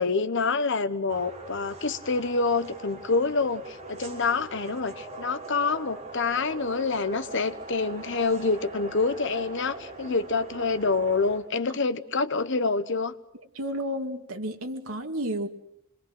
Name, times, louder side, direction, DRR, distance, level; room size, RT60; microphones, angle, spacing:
voice 1, 0.0-13.1, left 4 dB, 60° left, 11 dB, 1.2 m, -27 dB
sound 1, 1.1-11.4, right 3 dB, 35° right, 5.7 m, -42 dB
voice 2, 13.5-15.5, equal, 85° right, 4 dB, 2.5 m, -32 dB
26.5 x 22.0 x 6.2 m, 0.78 s
head